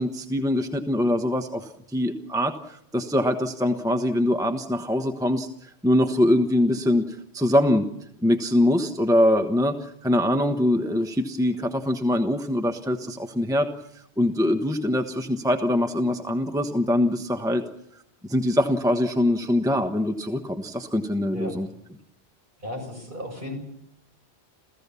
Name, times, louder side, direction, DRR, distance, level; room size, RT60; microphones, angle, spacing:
voice 1, 0.0-7.8 8.2-13.7 13.9-17.6 18.2-21.7, left 1 dB, 5° right, 6 dB, 1.2 m, -23 dB
voice 2, 22.6-23.6, left 1 dB, 50° right, 2 dB, 7.3 m, -35 dB
28.5 x 16.0 x 7.0 m, 0.76 s
omnidirectional pair, 1.1 m